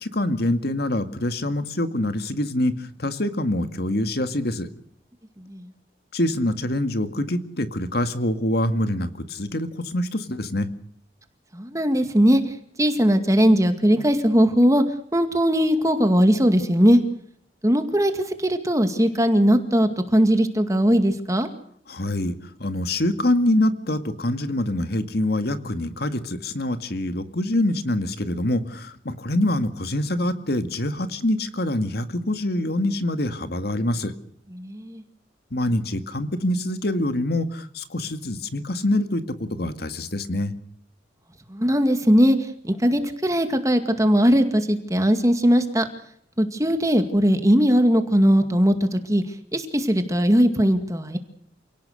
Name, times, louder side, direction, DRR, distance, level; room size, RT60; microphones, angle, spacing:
voice 1, 0.0-4.7 6.1-10.7 21.9-34.1 35.5-40.6, left 1 dB, 55° left, 10 dB, 2.0 m, -25 dB
voice 2, 5.4-5.7 11.5-14.8 15.1-17.0 17.6-21.5 34.5-35.0 41.5-45.9 46.4-49.2 49.5-51.2, equal, 20° right, 7 dB, 2.1 m, -19 dB
28.0 x 18.5 x 6.5 m, 0.67 s
head